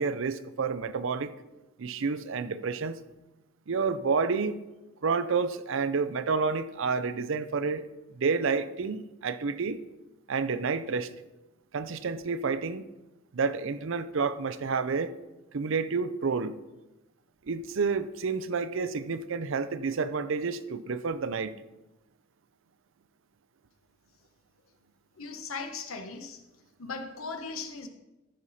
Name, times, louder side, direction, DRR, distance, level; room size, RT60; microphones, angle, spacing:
voice 1, 0.0-1.3 1.8-3.0 3.7-4.6 5.0-7.9 8.1-9.8 10.3-11.1 11.7-12.8 13.3-15.1 15.5-16.6 17.4-21.5, right 5 dB, 65° right, 0.5 m, -29 dB
voice 2, 25.1-26.4 26.8-27.9, left 4 dB, 80° left, 1.1 m, -38 dB
14.5 x 5.7 x 4.2 m
head